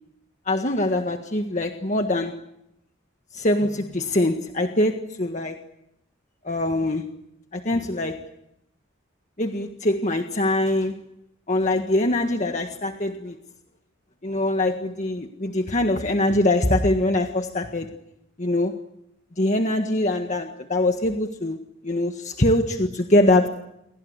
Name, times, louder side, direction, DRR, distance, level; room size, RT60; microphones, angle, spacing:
voice 1, 0.5-2.4 3.3-5.6 6.4-7.1 7.5-8.3 9.4-11.1 11.5-13.4 14.2-18.0 18.4-18.8 19.4-23.5, left 1 dB, 35° left, 5 dB, 1.6 m, -23 dB
29.5 x 23.5 x 8.2 m, 0.83 s
head